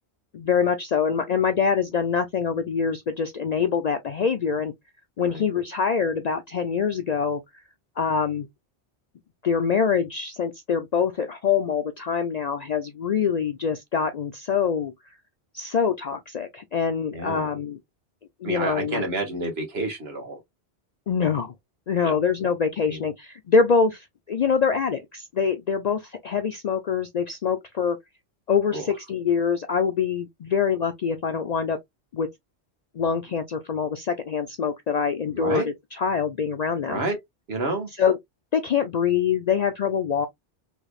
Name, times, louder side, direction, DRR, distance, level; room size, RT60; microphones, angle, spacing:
voice 1, 0.3-4.7 5.2-7.4 8.0-8.5 9.4-14.9 15.5-17.8 18.4-19.0 21.1-21.5 21.9-28.0 28.5-31.8 32.1-32.3 33.0-35.6 35.9-37.0 38.0-38.2 38.5-40.3, left 6 dB, 60° left, 0.4 m, -24 dB
voice 2, 17.1-17.5 18.4-20.4 22.0-22.2 22.9-23.0 28.7-28.9 35.3-35.7 36.9-37.2 37.5-37.9, right 2 dB, 65° right, 1.7 m, -29 dB
3.3 x 3.2 x 2.3 m
omnidirectional pair, 1.1 m